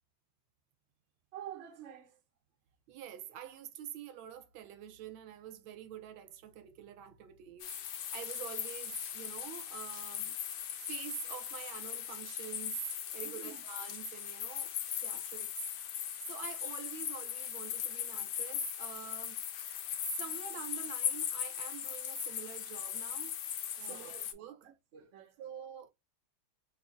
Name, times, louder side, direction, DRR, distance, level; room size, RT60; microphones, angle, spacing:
voice 1, 1.3-2.2 13.2-13.6 23.8-24.3 24.6-25.4, right 10 dB, 55° right, 0.8 m, -49 dB
voice 2, 2.9-10.3 10.8-12.8 13.1-15.7 16.3-19.4 20.1-23.3 23.8-24.7 25.4-25.9, right 10 dB, 80° right, 1.4 m, -46 dB
sound 1, 7.6-24.3, left 10 dB, 70° left, 1.0 m, -39 dB
3.7 x 2.4 x 3.7 m
omnidirectional pair, 2.2 m